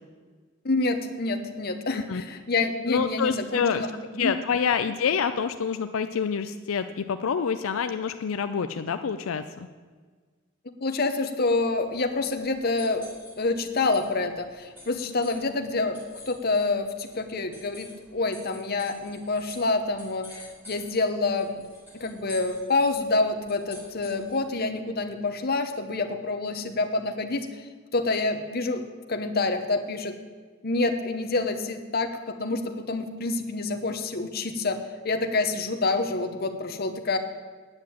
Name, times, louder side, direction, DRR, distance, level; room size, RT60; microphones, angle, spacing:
voice 1, 0.6-4.3 10.8-13.0 13.4-16.0 16.3-21.6 21.9-28.8 29.1-30.1 30.6-34.8 35.0-37.2, left 3 dB, 50° left, 7 dB, 0.9 m, -27 dB
voice 2, 2.9-3.9 4.2-9.7, left 6 dB, 80° left, 9 dB, 0.4 m, -27 dB
sound 1, 11.7-24.6, left 2 dB, 10° right, 4.5 m, -50 dB
9.7 x 7.5 x 8.7 m, 1.5 s
head